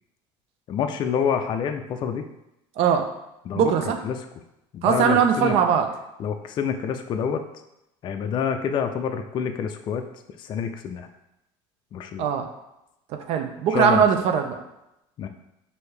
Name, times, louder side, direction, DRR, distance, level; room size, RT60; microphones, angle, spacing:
voice 1, 0.7-2.3 3.5-4.2 4.7-5.6 6.2-7.4 8.0-11.1 11.9-12.3 13.7-14.0 15.2-15.3, left 7 dB, 40° left, 6 dB, 0.4 m, -27 dB
voice 2, 2.8-3.1 3.6-4.0 4.8-5.9 12.2-12.5 13.3-14.6, right 7 dB, 60° right, 5 dB, 0.5 m, -20 dB
4.5 x 2.7 x 3.2 m, 0.88 s
supercardioid pair, 105°, 12 cm